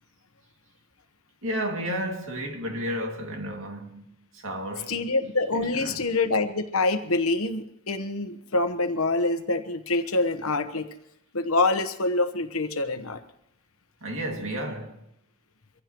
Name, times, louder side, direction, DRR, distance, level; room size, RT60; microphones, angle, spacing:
voice 1, 1.4-4.1 4.4-5.0 5.5-6.0 14.0-15.0, equal, 65° right, 2.4 m, -32 dB
voice 2, 4.9-10.9 11.3-13.2, left 2 dB, 80° left, 1.2 m, -26 dB
24.5 x 15.5 x 3.1 m
head